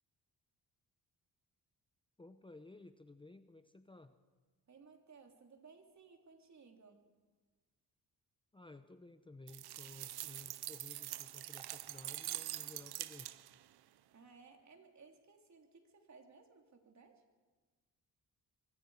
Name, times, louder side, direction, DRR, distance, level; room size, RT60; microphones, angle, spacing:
voice 1, 2.2-4.2 8.5-13.3, left 2 dB, 15° left, 9 dB, 0.9 m, -56 dB
voice 2, 4.7-7.0 14.1-17.2, right 4 dB, 45° right, 3 dB, 3.3 m, -60 dB
sound 1, 9.5-13.6, right 14 dB, 90° right, 0.7 m, -44 dB
24.0 x 23.5 x 4.9 m, 1.3 s
cardioid pair, 100°, 37 cm